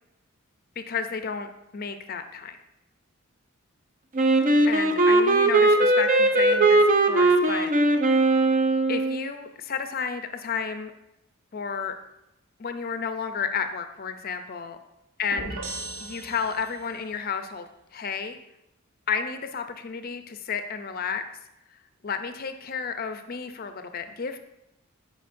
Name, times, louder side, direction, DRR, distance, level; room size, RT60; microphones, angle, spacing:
voice 1, 0.8-2.6 4.7-6.8 7.1-7.7 8.9-10.9 11.5-12.0 12.6-14.8 15.2-15.5 16.0-17.7 17.9-18.4 19.1-21.2 22.0-24.4, left 6 dB, 45° left, 8 dB, 0.5 m, -31 dB
Wind instrument woodwind instrument, 4.2-9.2, right 2 dB, 40° right, 0.5 m, -20 dB
sound 1, 15.3-17.0, right 2 dB, 75° right, 1.0 m, -37 dB
10.5 x 5.0 x 2.6 m, 0.89 s
head